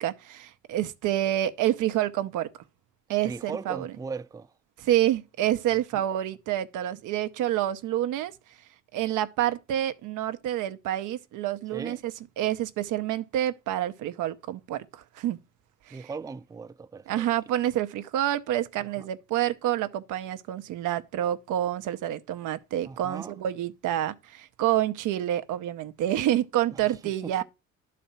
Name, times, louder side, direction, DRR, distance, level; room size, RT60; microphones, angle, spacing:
voice 1, 0.0-2.5 3.1-3.9 4.8-8.3 8.9-15.4 15.9-16.1 17.1-27.4, right 12 dB, 85° right, 0.7 m, -28 dB
voice 2, 3.2-4.5 5.9-6.0 11.7-12.0 15.9-17.2 19.0-19.1 22.8-23.3 26.8-26.9 27.2-27.4, right 4 dB, 10° right, 0.4 m, -38 dB
11.0 x 4.2 x 5.5 m
cardioid pair, 90°, 30 cm